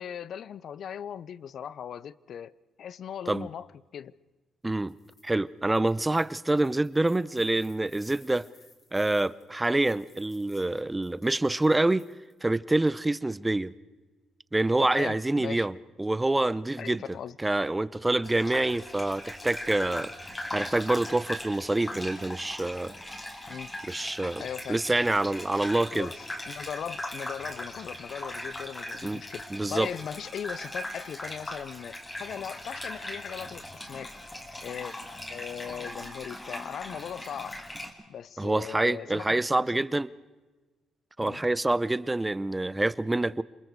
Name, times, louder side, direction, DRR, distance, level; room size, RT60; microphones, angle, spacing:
voice 1, 0.0-2.5 2.8-3.7 3.9-4.1 14.8-15.7 16.8-17.4 23.5-23.7 24.4-24.8 25.8-29.4 29.7-34.1 34.6-35.0 35.3-37.6 38.1-39.8 41.2-41.4, left 8 dB, 65° left, 0.6 m, -39 dB
voice 2, 4.6-4.9 5.2-8.5 8.9-12.0 12.4-13.7 14.5-15.7 16.0-17.0 17.4-22.9 23.9-24.4 24.7-26.1 29.0-29.2 29.5-29.9 38.4-40.1 41.2-43.4, right 2 dB, 15° right, 0.6 m, -26 dB
sound 1, 4.8-5.3 5.7-12.4, left 3 dB, 45° left, 4.3 m, -59 dB
Gurgling / Bathtub (filling or washing), 18.2-37.9, left 1 dB, 20° left, 2.8 m, -39 dB
28.0 x 20.5 x 4.7 m
cardioid pair, 90°, 0 cm